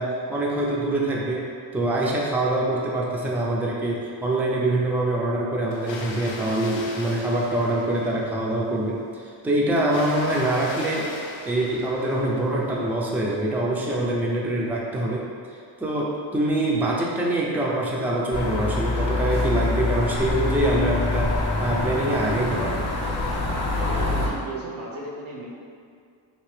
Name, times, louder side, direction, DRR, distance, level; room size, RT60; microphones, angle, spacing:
voice 1, 0.0-1.5 1.7-15.2 15.8-21.3 21.6-22.9, right 1 dB, 5° right, -4 dB, 0.4 m, -24 dB
Water, 5.7-8.5 9.8-12.6, left 2 dB, 65° left, 0.6 m, -39 dB
sound 1, 18.3-24.3, left 2 dB, 30° left, 0.8 m, -25 dB
voice 2, 23.7-25.5, right 2 dB, 75° right, -4 dB, 0.9 m, -35 dB
2.8 x 2.8 x 3.2 m, 2.3 s
cardioid pair, 55°, 48 cm